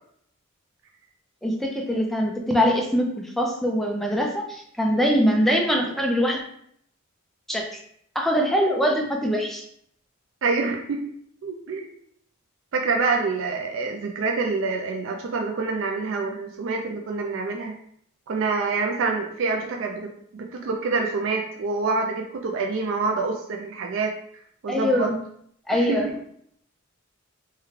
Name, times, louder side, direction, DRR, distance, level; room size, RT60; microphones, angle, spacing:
voice 1, 1.4-6.4 7.5-7.7 8.2-9.6 24.7-25.1 25.7-26.1, equal, ahead, 0 dB, 0.4 m, -23 dB
voice 2, 10.4-11.0 11.4-11.9 12.7-17.7 18.3-24.1 24.6-25.1 25.7-26.0, right 4 dB, 60° right, 1 dB, 0.4 m, -26 dB
3.5 x 2.2 x 3.1 m, 0.68 s
head